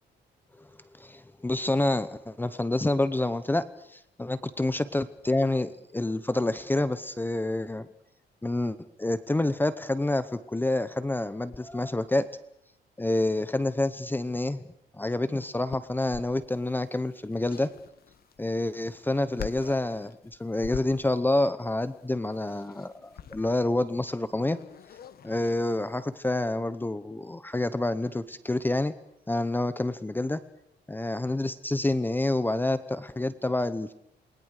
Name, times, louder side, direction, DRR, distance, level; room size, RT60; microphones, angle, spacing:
voice 1, 1.0-7.9 8.4-12.3 13.0-14.6 14.9-17.7 18.4-24.6 25.2-28.9 29.3-30.4 30.9-33.9, left 2 dB, 10° left, 13 dB, 0.9 m, -28 dB
sound 1, 15.7-26.1, left 9 dB, 55° left, 1.4 m, -46 dB
28.5 x 21.0 x 6.6 m, 0.74 s
cardioid pair, 150°, 18 cm